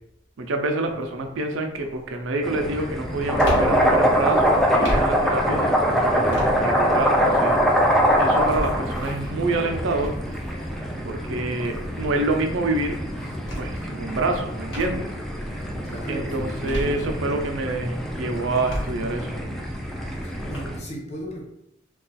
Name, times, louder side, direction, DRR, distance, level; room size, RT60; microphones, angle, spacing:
voice 1, 0.4-7.6 7.9-10.1 11.0-13.0 13.6-15.1 16.1-19.3, right 2 dB, 80° right, 4 dB, 0.5 m, -27 dB
sound 1, 0.9-1.3 1.7-15.3 15.7-17.6 18.0-20.6, right 1 dB, 90° left, 1.3 m, -36 dB
sound 2, 2.4-20.8, equal, ahead, 0.3 m, -24 dB
voice 2, 15.8-17.2 20.1-21.4, equal, 35° left, -2 dB, 0.7 m, -36 dB
2.3 x 2.3 x 4.0 m, 0.79 s
head